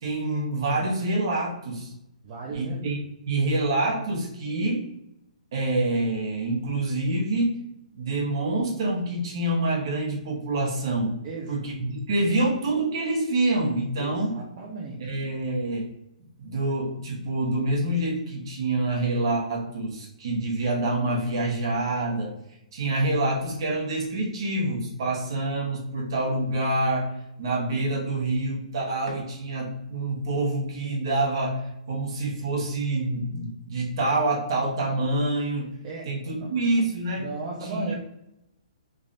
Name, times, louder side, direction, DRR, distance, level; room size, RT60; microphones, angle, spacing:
voice 1, 0.0-1.9 2.5-3.0 3.3-4.9 5.5-7.6 7.9-11.2 11.5-14.4 15.0-15.9 16.4-22.4 22.7-27.1 27.4-35.7 36.0-37.3 37.6-37.9, right 2 dB, 35° right, -1 dB, 1.0 m, -26 dB
voice 2, 2.2-2.8 11.2-11.6 12.3-12.4 14.0-15.2 35.8-36.5 37.2-37.9, right 3 dB, 20° right, -3 dB, 0.4 m, -36 dB
3.2 x 2.5 x 3.8 m, 0.83 s
hypercardioid pair, 175°, 4 cm